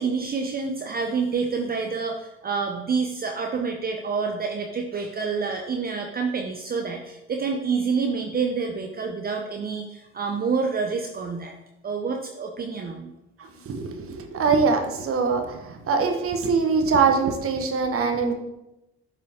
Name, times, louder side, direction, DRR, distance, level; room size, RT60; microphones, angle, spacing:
voice 1, 0.0-11.5 11.8-13.1, right 5 dB, 30° right, 2 dB, 0.7 m, -28 dB
voice 2, 13.4-18.3, right 5 dB, 50° right, 5 dB, 1.2 m, -23 dB
7.1 x 5.1 x 3.7 m, 0.93 s
supercardioid pair, 75°, 29 cm